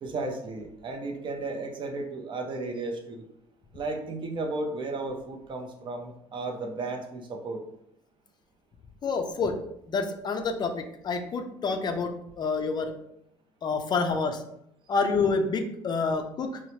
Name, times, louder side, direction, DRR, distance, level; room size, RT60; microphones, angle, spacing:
voice 1, 0.0-3.3 3.7-7.6, right 2 dB, 40° right, 3 dB, 0.5 m, -34 dB
voice 2, 9.0-9.6 9.9-12.9 13.6-14.4 14.9-16.6, left 4 dB, 35° left, 6 dB, 0.3 m, -28 dB
2.9 x 2.0 x 2.7 m, 0.75 s
supercardioid pair, 90°, 12 cm